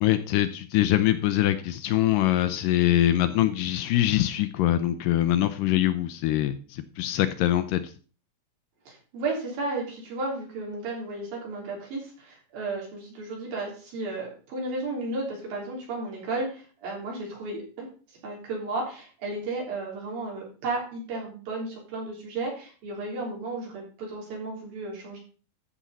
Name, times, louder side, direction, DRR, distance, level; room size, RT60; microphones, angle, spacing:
voice 1, 0.0-7.9, left 13 dB, 80° left, 11 dB, 2.1 m, -23 dB
voice 2, 8.9-17.9 18.2-25.2, right 2 dB, 75° right, -2 dB, 5.3 m, -33 dB
14.0 x 6.2 x 4.1 m, 0.37 s
omnidirectional pair, 4.2 m